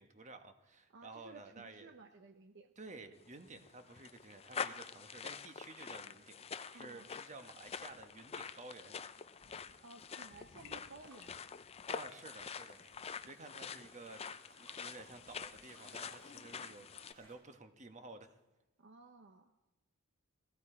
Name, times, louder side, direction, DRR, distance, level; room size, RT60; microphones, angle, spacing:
voice 1, 0.0-1.9 2.8-9.0 11.9-14.2 14.5-18.3, right 3 dB, 30° right, 7 dB, 1.3 m, -53 dB
voice 2, 0.9-2.7 6.7-7.1 9.5-11.4 18.8-19.5, right 3 dB, 55° right, 7 dB, 0.8 m, -56 dB
sound 1, 3.3-17.1, left 6 dB, 25° left, 0.5 m, -46 dB
sound 2, 7.6-17.3, right 2 dB, 75° right, 4.7 m, -67 dB
sound 3, 9.9-13.3 13.5-17.3, left 11 dB, 65° left, 0.8 m, -65 dB
19.5 x 14.5 x 5.0 m, 1.0 s
head